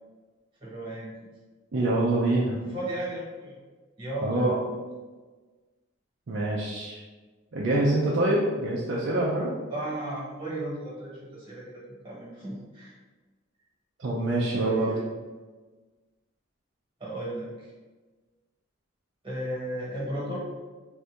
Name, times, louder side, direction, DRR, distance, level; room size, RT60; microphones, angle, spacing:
voice 1, 0.6-1.1 2.6-3.6 4.0-4.8 9.7-12.9 14.5-15.0 17.0-17.7 19.2-20.4, right 1 dB, 25° right, -6 dB, 1.2 m, -35 dB
voice 2, 1.7-2.5 4.2-4.5 6.3-7.0 7.5-9.5 14.0-14.9, right 2 dB, 60° right, -5 dB, 0.5 m, -25 dB
2.7 x 2.6 x 3.4 m, 1.3 s
head